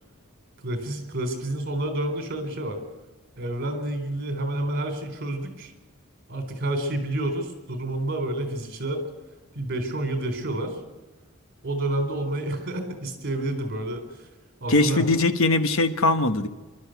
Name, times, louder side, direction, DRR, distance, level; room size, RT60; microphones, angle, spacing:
voice 1, 0.6-2.8 3.4-5.7 6.3-9.0 9.6-10.8 11.6-14.3 14.6-15.0, right 1 dB, 45° right, 5 dB, 3.9 m, -29 dB
voice 2, 14.7-16.5, left 2 dB, 65° left, 9 dB, 1.3 m, -21 dB
27.5 x 12.5 x 8.0 m, 1.2 s
head